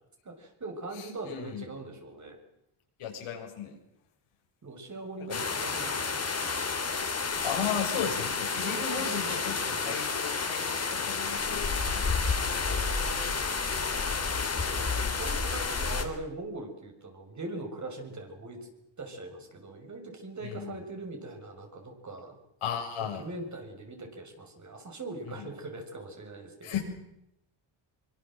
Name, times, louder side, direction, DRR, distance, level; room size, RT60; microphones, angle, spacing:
voice 1, 0.2-2.4 4.6-6.3 8.6-10.0 12.6-13.5 14.6-18.7 19.0-22.4 23.0-26.7, right 2 dB, 35° right, 4 dB, 6.7 m, -41 dB
voice 2, 0.9-1.7 3.0-3.8 5.3-5.4 7.4-12.2 12.5-12.7 20.4-20.8 22.6-23.2 25.3-25.5 26.6-26.8, left 8 dB, 90° left, 2 dB, 7.2 m, -36 dB
sound 1, 5.3-16.0, left 4 dB, 30° left, 3.8 m, -30 dB
24.5 x 24.0 x 7.8 m, 0.83 s
cardioid pair, 110°, 48 cm